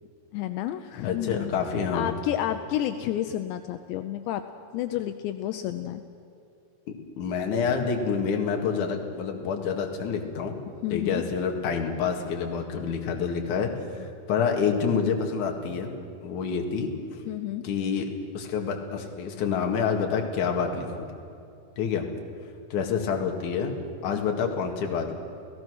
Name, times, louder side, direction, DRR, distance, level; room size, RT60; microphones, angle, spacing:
voice 1, 0.3-1.5 1.9-4.4 4.7-6.0 10.8-11.2 17.3-17.6 24.1-24.2, left 12 dB, 80° left, 8 dB, 2.9 m, -30 dB
voice 2, 1.0-2.1 7.2-10.6 10.9-13.7 14.0-15.9 16.2-16.9 17.6-21.1 21.8-22.1 22.7-23.7 24.0-25.1, left 6 dB, 50° left, 2 dB, 2.8 m, -27 dB
29.5 x 17.0 x 6.3 m, 2.7 s
omnidirectional pair, 5.3 m